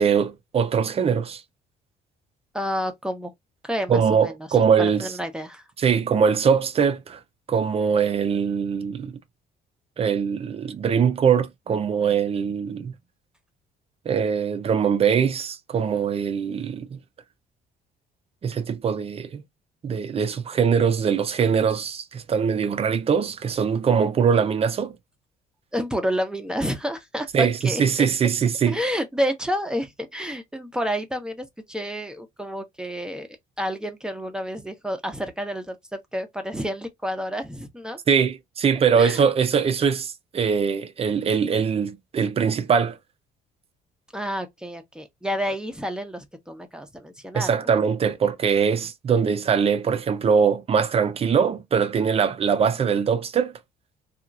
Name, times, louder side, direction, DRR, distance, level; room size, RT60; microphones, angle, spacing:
voice 1, 0.0-1.4 3.9-5.1 5.8-7.2 7.5-9.1 10.0-12.9 14.1-17.0 18.4-19.4 19.8-25.0 27.3-28.8 38.1-43.0 47.3-53.5, right 6 dB, 35° right, 0.6 m, -22 dB
voice 2, 2.5-3.3 3.6-4.5 4.8-5.6 25.7-28.1 28.6-33.3 33.6-38.0 38.9-39.3 44.1-47.7, equal, 5° right, 0.8 m, -29 dB
2.9 x 2.4 x 2.5 m
cardioid pair, 110°, 17 cm